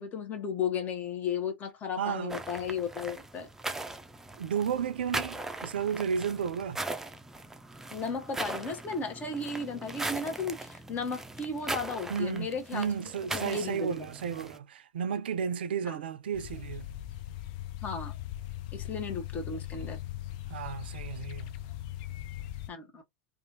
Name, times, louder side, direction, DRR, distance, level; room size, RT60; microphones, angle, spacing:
voice 1, 0.0-3.5 7.9-12.9 13.3-14.0 15.8-16.0 17.8-18.1 18.7-20.0 22.7-23.0, left 5 dB, 30° left, 1.0 m, -34 dB
voice 2, 2.0-2.4 4.4-6.8 12.1-16.9 20.5-21.5, right 7 dB, 70° right, 0.4 m, -33 dB
sound 1, 2.3-14.6, right 2 dB, 5° right, 0.5 m, -39 dB
sound 2, 16.3-22.7, left 13 dB, 55° left, 0.4 m, -39 dB
2.7 x 2.4 x 2.8 m
figure-of-eight pair, 90°, 6 cm